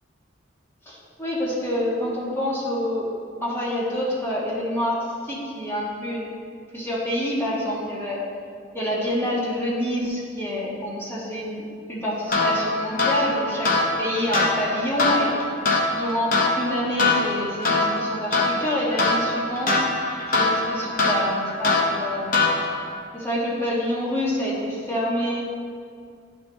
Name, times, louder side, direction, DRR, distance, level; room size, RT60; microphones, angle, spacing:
voice 1, 0.9-3.1 3.4-6.3 6.7-8.2 8.7-13.7 14.0-15.3 15.9-19.7 20.3-22.3 23.1-25.4, equal, 10° left, -7 dB, 1.4 m, -27 dB
sound 1, 12.3-22.9, left 2 dB, 45° left, 0.7 m, -23 dB
10.0 x 3.5 x 3.9 m, 2.2 s
head